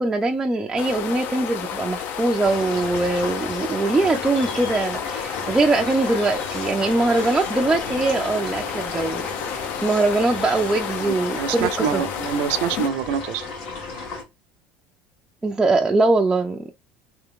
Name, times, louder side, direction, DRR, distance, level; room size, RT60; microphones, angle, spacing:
voice 1, 0.0-12.0 15.4-16.7, right 2 dB, 10° right, 0.4 m, -22 dB
sound 1, 0.8-12.9, left 8 dB, 55° left, 0.6 m, -31 dB
sound 2, 2.4-14.2, left 3 dB, 85° left, 1.9 m, -34 dB
sound 3, 4.3-10.8, left 2 dB, 35° left, 1.8 m, -39 dB
voice 2, 11.0-13.5, right 8 dB, 70° right, 0.6 m, -26 dB
3.5 x 2.8 x 3.6 m
cardioid pair, 140°, 4 cm